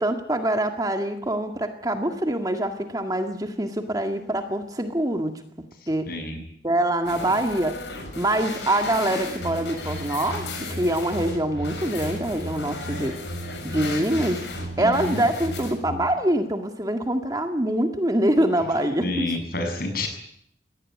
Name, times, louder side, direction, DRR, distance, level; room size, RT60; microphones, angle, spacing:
voice 1, 0.0-5.3 5.9-6.0 6.6-7.7 8.2-13.1 13.6-14.4 14.8-19.4, right 1 dB, 20° right, 5 dB, 1.9 m, -24 dB
voice 2, 6.1-6.4 19.0-20.1, left 2 dB, 55° left, 5 dB, 7.2 m, -28 dB
sound 1, 7.0-15.7, left 3 dB, 75° left, 7.5 m, -36 dB
sound 2, 9.4-16.0, right 1 dB, 85° right, 6.3 m, -36 dB
22.5 x 17.5 x 9.7 m, 0.69 s
head